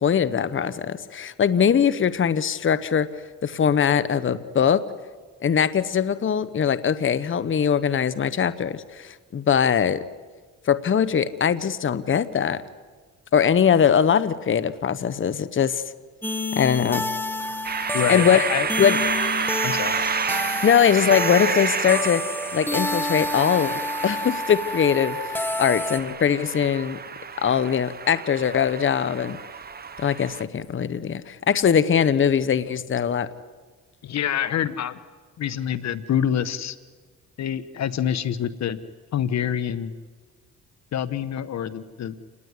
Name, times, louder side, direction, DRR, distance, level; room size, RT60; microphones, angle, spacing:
voice 1, 0.0-3.1 3.4-4.8 5.4-10.0 10.7-12.6 13.3-15.8 16.5-17.0 18.1-18.4 18.8-19.0 20.6-22.2 22.5-27.0 27.4-29.4 30.0-33.3, left 8 dB, 40° left, 14 dB, 1.2 m, -21 dB
sound 1, 16.2-26.0, left 1 dB, 5° left, 2.2 m, -29 dB
sound 2, 17.6-30.4, right 5 dB, 30° right, 1.2 m, -30 dB
voice 2, 17.9-18.7 19.6-19.9 34.0-35.0 35.4-36.8 37.4-38.8 39.1-39.9 40.9-42.1, left 9 dB, 65° left, 14 dB, 1.3 m, -26 dB
28.5 x 19.5 x 9.8 m, 1.4 s
cardioid pair, 90°, 30 cm